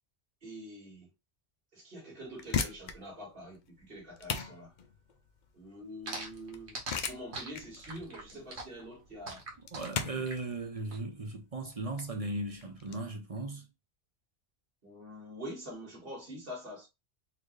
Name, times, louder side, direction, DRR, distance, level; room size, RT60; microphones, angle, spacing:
voice 1, 0.4-1.1 1.7-4.7 5.5-6.8 7.1-9.4 10.1-10.3 14.8-16.9, equal, 55° right, 2.1 m, -45 dB
sound 1, 2.2-13.0, left 6 dB, 55° left, 0.6 m, -39 dB
sound 2, 6.1-11.0, right 3 dB, 80° right, 1.4 m, -42 dB
voice 2, 9.7-13.7, right 2 dB, 40° right, 0.7 m, -37 dB
4.2 x 2.7 x 3.2 m
omnidirectional pair, 1.1 m